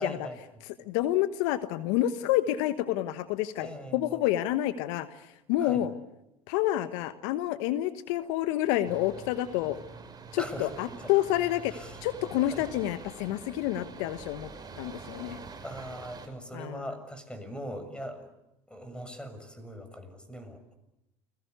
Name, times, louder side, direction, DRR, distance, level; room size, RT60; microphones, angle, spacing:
voice 1, 0.0-0.6 3.6-4.2 5.6-5.9 10.4-11.1 11.7-12.0 12.4-12.8 15.6-18.3 18.7-20.7, equal, 5° left, 10 dB, 6.8 m, -41 dB
voice 2, 0.8-5.2 5.5-5.9 6.5-9.8 10.3-11.7 12.0-14.5 14.8-15.4 16.5-16.9, left 14 dB, 70° left, 11 dB, 1.3 m, -28 dB
sound 1, 8.8-16.3, right 4 dB, 25° right, 5.8 m, -46 dB
29.5 x 21.0 x 8.2 m, 0.90 s
hypercardioid pair, 80°, 16 cm